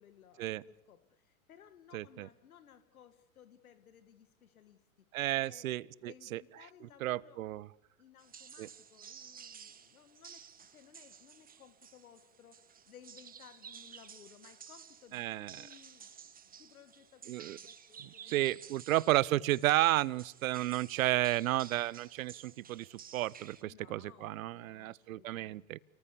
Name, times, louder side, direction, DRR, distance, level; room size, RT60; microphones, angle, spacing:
voice 1, 0.0-4.8 5.4-5.7 6.0-7.4 8.0-18.8 23.7-25.7, left 9 dB, 85° left, 12 dB, 2.0 m, -60 dB
voice 2, 1.9-2.3 5.1-6.4 7.0-7.7 8.6-8.7 15.1-15.7 17.3-17.6 18.0-25.8, right 15 dB, 70° right, 24 dB, 0.9 m, -32 dB
sound 1, 8.2-23.6, right 7 dB, 20° right, 1.7 m, -53 dB
29.5 x 19.0 x 8.5 m, 0.84 s
hypercardioid pair, 105°, 42 cm